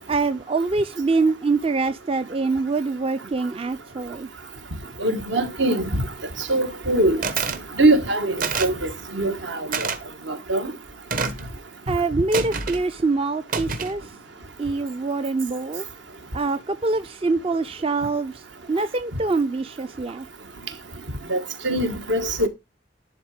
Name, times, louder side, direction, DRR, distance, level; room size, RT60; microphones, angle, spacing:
voice 1, 0.1-4.3 11.9-14.1 14.6-15.9 16.3-18.4 18.7-20.3, right 3 dB, 30° right, 0.4 m, -24 dB
voice 2, 5.0-6.0 6.5-7.2 7.8-8.7 9.1-9.9 10.3-10.7 21.3-22.5, right 1 dB, 75° right, 1.7 m, -22 dB
sound 1, 7.2-7.6 8.4-8.8 9.7-10.0 11.1-11.5 12.3-12.8 13.5-14.0, right 4 dB, 45° right, 1.1 m, -27 dB
11.0 x 4.0 x 4.9 m
head